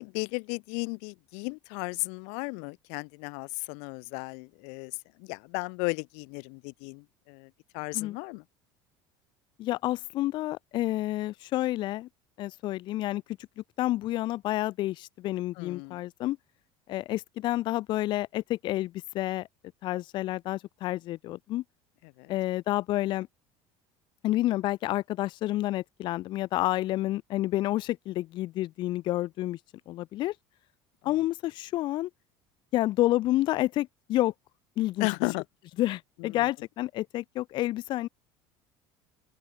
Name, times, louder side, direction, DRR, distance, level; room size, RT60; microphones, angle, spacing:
voice 1, 0.0-4.9 5.2-8.4 15.6-16.0 22.0-22.3 35.0-35.4 36.2-36.3, left 39 dB, 75° left, 0.9 m, -35 dB
voice 2, 9.6-12.1 12.4-13.2 13.8-16.4 16.9-19.5 19.8-21.6 22.3-23.3 24.2-29.6 29.9-30.3 31.0-32.1 32.7-34.3 34.8-35.1 35.8-38.1, left 16 dB, 45° left, 0.7 m, -29 dB
open air
cardioid pair, 160°, 11 cm